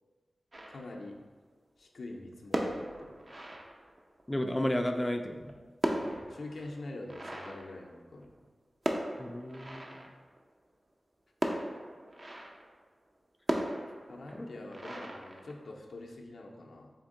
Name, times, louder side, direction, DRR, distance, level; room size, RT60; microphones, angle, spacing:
sound 1, 0.5-1.2 2.4-4.2 5.3-8.4 8.8-10.4 11.4-12.8 13.5-16.0, right 1 dB, 40° right, 0.5 m, -37 dB
voice 1, 0.7-1.2 1.8-3.2 5.9-8.3 14.1-16.9, left 2 dB, 80° left, 1 dB, 0.5 m, -45 dB
voice 2, 4.3-5.5 9.2-10.1 14.3-14.5, left 1 dB, 20° left, 4 dB, 0.3 m, -33 dB
4.4 x 2.6 x 3.6 m, 1.4 s
cardioid pair, 60°, 0 cm